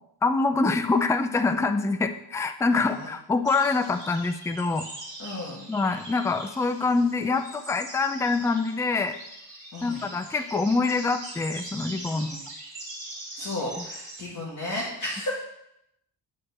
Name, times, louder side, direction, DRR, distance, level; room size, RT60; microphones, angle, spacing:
voice 1, 0.2-4.9 5.7-9.1 9.8-12.3, left 3 dB, 5° left, 9 dB, 0.4 m, -25 dB
voice 2, 2.7-3.1 5.2-5.6 9.7-10.0 12.1-12.4 13.4-15.3, left 1 dB, 40° left, -6 dB, 2.1 m, -34 dB
sound 1, 3.4-14.2, right 2 dB, 40° right, 2.9 m, -42 dB
9.6 x 4.4 x 6.6 m, 0.79 s
cardioid pair, 140°, 45 cm